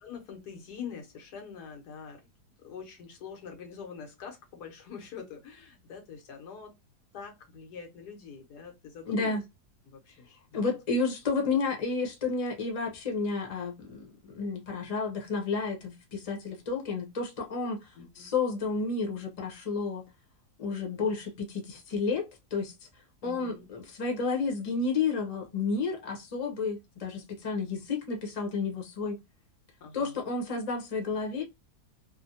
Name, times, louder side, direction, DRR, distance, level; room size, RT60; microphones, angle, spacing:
voice 1, 0.0-2.3 2.6-6.7 7.1-9.4 9.8-10.6 11.4-11.6 18.0-18.3 21.9-22.2 23.2-23.7 29.8-30.2, left 6 dB, 90° left, 1.5 m, -45 dB
voice 2, 9.1-9.4 10.5-20.0 20.6-22.3 22.5-22.7 23.2-29.2 29.9-31.4, left 4 dB, 35° left, 0.6 m, -31 dB
3.2 x 2.1 x 2.6 m
omnidirectional pair, 1.7 m